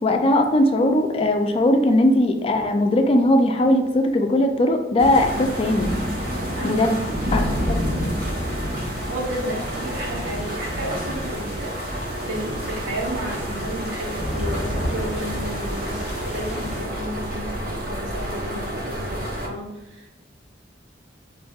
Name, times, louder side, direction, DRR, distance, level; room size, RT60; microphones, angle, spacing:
voice 1, 0.0-5.9 6.6-7.0 7.3-7.4 7.7-7.9, left 1 dB, 30° left, 5 dB, 0.3 m, -19 dB
sound 1, 5.0-16.8, equal, 30° right, 1.2 m, -30 dB
sound 2, 5.1-19.5, right 1 dB, 50° right, 0.7 m, -31 dB
voice 2, 6.5-7.0 9.0-20.1, right 1 dB, 90° right, 0 dB, 0.9 m, -32 dB
4.9 x 2.6 x 2.3 m, 1.0 s
head